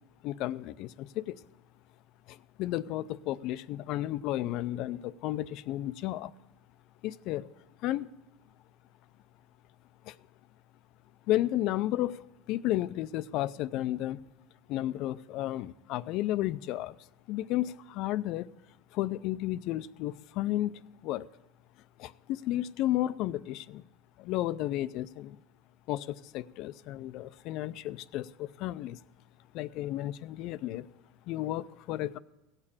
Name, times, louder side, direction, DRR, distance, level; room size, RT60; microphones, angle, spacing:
voice 1, 0.2-1.4 2.3-6.3 7.0-7.5 7.8-8.1 10.1-10.2 11.3-14.2 14.7-17.0 17.3-18.5 18.9-21.3 22.0-23.8 24.2-25.4 25.9-29.0 29.5-30.9 31.3-32.2, left 14 dB, 55° left, 0.4 m, -33 dB
16.0 x 6.7 x 7.1 m
supercardioid pair, 130°, 0 cm